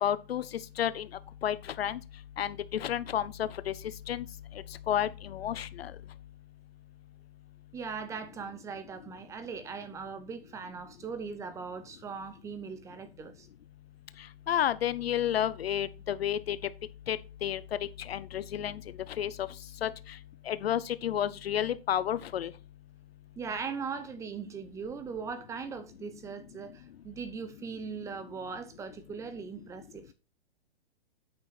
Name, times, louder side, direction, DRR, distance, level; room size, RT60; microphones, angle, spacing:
voice 1, 0.0-0.4 0.8-1.1 1.4-2.0 2.4-3.7 4.1-4.3 4.9-5.9 14.5-16.6 17.1-17.6 18.0-18.8 19.2-19.3 19.8-19.9 20.5-22.5, left 10 dB, 80° left, 0.7 m, -30 dB
voice 2, 7.7-13.5 23.4-30.1, right 5 dB, 10° right, 0.7 m, -39 dB
8.8 x 6.2 x 4.2 m
hypercardioid pair, 145°, 30 cm